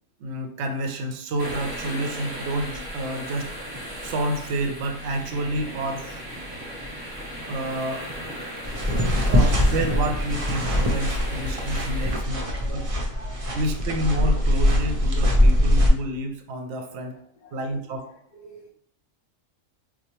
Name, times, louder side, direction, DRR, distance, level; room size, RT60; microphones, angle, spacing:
voice 1, 0.2-3.5 4.0-6.2 7.5-8.1 9.3-12.9 13.5-17.1 17.5-18.1, right 1 dB, 65° right, 0.8 m, -29 dB
sound 1, 1.4-12.1, equal, 20° right, 0.9 m, -36 dB
sound 2, 8.6-15.9, left 1 dB, 45° right, 0.5 m, -22 dB
voice 2, 9.0-10.0 10.7-11.8 12.4-13.6 15.6-15.7 17.4-17.7 18.4-18.7, left 2 dB, 55° left, 0.4 m, -49 dB
4.2 x 2.2 x 2.9 m
omnidirectional pair, 1.3 m